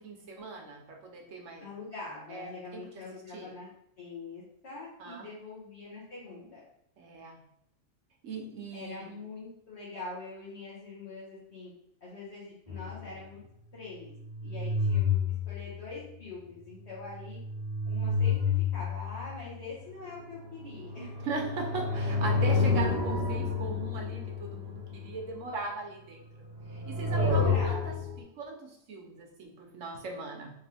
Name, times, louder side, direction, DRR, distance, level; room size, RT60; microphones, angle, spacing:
voice 1, 0.0-1.7 2.3-2.8 3.3-3.5 5.0-5.3 7.0-7.4 8.2-9.1 21.2-26.3 26.7-27.9 28.4-30.5, right 3 dB, 70° right, 1 dB, 1.2 m, -39 dB
voice 2, 1.6-3.7 4.0-6.6 8.7-11.7 12.0-13.4 13.7-14.1 14.4-15.1 15.5-17.4 17.8-21.1 27.1-28.0, left 3 dB, 55° left, -8 dB, 1.4 m, -43 dB
sound 1, 12.7-13.0 14.1-15.7 17.1-19.4 20.1-25.2 26.4-28.2, left 4 dB, 25° right, 0.6 m, -30 dB
3.6 x 3.3 x 3.4 m, 0.73 s
omnidirectional pair, 1.4 m